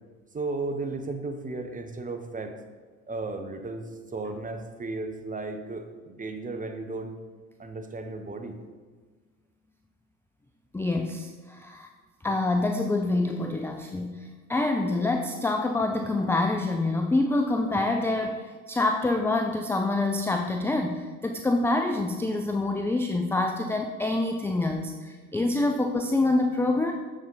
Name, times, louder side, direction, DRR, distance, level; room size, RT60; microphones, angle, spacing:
voice 1, 0.3-2.5 3.1-7.1 7.6-8.5, right 3 dB, 20° right, 6 dB, 0.9 m, -34 dB
voice 2, 10.7-11.9 12.2-26.9, left 2 dB, 5° left, 5 dB, 0.4 m, -26 dB
6.9 x 6.4 x 4.0 m, 1.4 s
hypercardioid pair, 65°, 41 cm